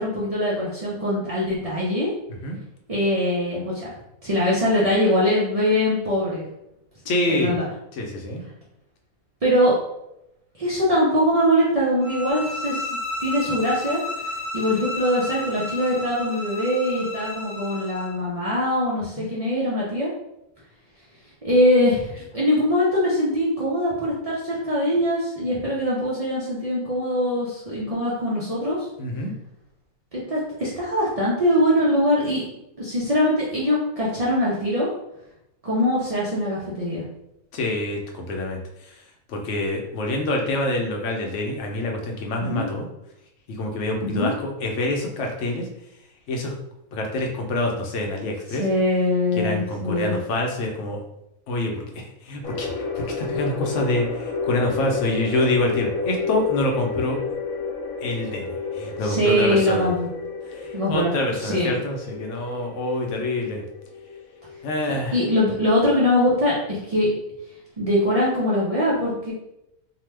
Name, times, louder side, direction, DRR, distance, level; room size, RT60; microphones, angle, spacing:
voice 1, 0.0-2.1 2.9-3.9 4.2-6.4 7.3-7.6 9.4-9.7 10.6-14.0 14.5-20.1 21.4-28.9 30.1-32.4 32.8-34.9 35.6-37.0 42.4-42.7 44.0-44.3 48.6-50.1 59.0-60.1 60.7-61.1 61.4-61.7 65.1-67.1 67.8-69.3, left 1 dB, 75° right, -7 dB, 0.3 m, -22 dB
voice 2, 7.1-7.5 7.9-8.4 19.2-19.3 29.0-29.3 37.5-38.9 39.3-42.9 43.5-45.7 46.3-46.5 46.9-48.6 49.4-51.0 51.5-52.7 53.0-57.2 58.0-59.9 60.5-63.6 64.6-65.2, left 1 dB, 65° left, 2 dB, 0.8 m, -26 dB
sound 1, 12.0-18.2, left 2 dB, 35° left, 0.5 m, -32 dB
sound 2, 52.4-64.6, left 4 dB, 85° left, 1.1 m, -31 dB
2.8 x 2.2 x 3.2 m, 0.85 s
omnidirectional pair, 1.5 m